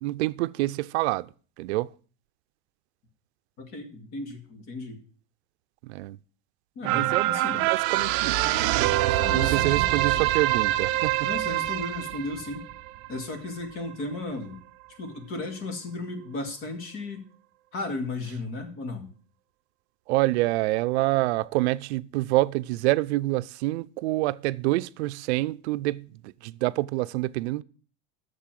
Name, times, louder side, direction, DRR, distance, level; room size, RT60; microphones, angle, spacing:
voice 1, 0.0-1.3 1.6-1.9 5.8-6.2 6.8-8.5 8.8-11.3 20.1-27.6, right 19 dB, 80° right, 0.5 m, -27 dB
voice 2, 3.6-5.0 6.8-7.6 9.2-10.4 11.2-12.7 13.1-14.6 14.9-17.2 17.7-19.1, left 2 dB, 40° left, 2.2 m, -35 dB
sound 1, 6.8-13.5 13.9-14.0, right 16 dB, 40° right, 0.6 m, -25 dB
8.4 x 6.8 x 7.5 m
supercardioid pair, 170°, 33 cm